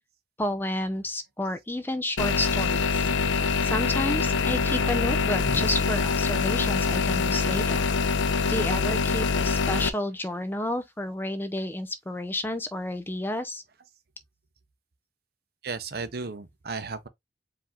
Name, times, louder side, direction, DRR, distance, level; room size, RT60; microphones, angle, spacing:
voice 1, 0.4-3.1 3.6-7.8 8.5-13.6, left 1 dB, 10° left, 0.5 m, -31 dB
sound 1, 2.2-9.9, left 4 dB, 90° left, 0.6 m, -25 dB
sound 2, 2.7-8.1, left 3 dB, 60° left, 0.9 m, -41 dB
voice 2, 15.6-17.1, right 4 dB, 55° right, 0.7 m, -34 dB
4.8 x 2.7 x 3.6 m
head